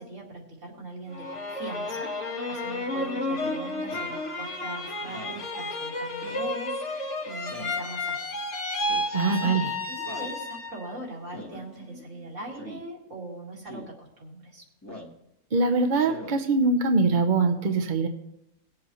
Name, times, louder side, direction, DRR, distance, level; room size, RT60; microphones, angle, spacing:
voice 1, 0.0-8.4 9.0-14.6, right 1 dB, 75° right, -2 dB, 2.7 m, -41 dB
sound 1, 1.1-10.9 11.3-12.0, left 2 dB, 65° left, 1.6 m, -32 dB
Speech synthesizer, 3.9-4.2 5.0-5.4 6.2-6.5 7.4-7.8 8.7-9.2 10.0-10.4 11.3-11.6 12.5-12.8 13.7-13.9 14.8-15.2 16.0-16.4, left 1 dB, 15° left, 1.5 m, -43 dB
voice 2, 9.1-9.7 15.5-18.1, right 3 dB, 45° right, 4 dB, 0.9 m, -23 dB
20.0 x 7.6 x 3.1 m, 0.83 s
omnidirectional pair, 1.3 m